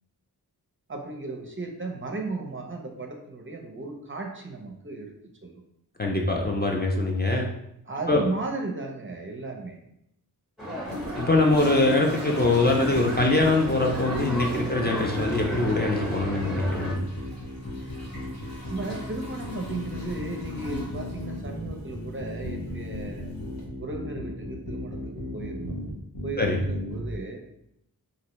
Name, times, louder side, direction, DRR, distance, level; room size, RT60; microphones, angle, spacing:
voice 1, 0.9-5.1 5.4-5.5 7.9-9.8 18.6-23.3 23.8-25.8 26.2-27.4, right 3 dB, 35° right, 2 dB, 0.5 m, -35 dB
voice 2, 6.0-7.5 8.1-8.2 11.2-17.0 26.4-26.6, left 2 dB, 25° left, 0 dB, 0.4 m, -23 dB
sound 1, 10.6-16.9, equal, ahead, 0.8 m, -34 dB
Toilet flush, 10.8-23.6, left 1 dB, 65° left, 1.1 m, -39 dB
sound 2, 12.5-27.1, left 1 dB, 90° left, 0.9 m, -36 dB
3.2 x 2.6 x 3.0 m, 0.78 s
wide cardioid pair, 75°, 38 cm